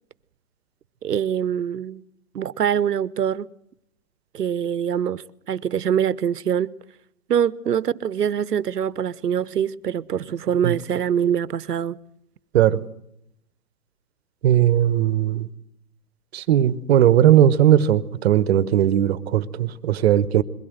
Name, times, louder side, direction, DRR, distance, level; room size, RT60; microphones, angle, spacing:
voice 1, 1.0-2.0 2.3-3.5 4.3-6.7 7.3-12.0, right 8 dB, 85° right, 0.9 m, -24 dB
voice 2, 14.4-15.5 16.3-20.4, right 11 dB, 45° right, 1.1 m, -18 dB
22.5 x 17.0 x 8.0 m
hypercardioid pair, 140°, 46 cm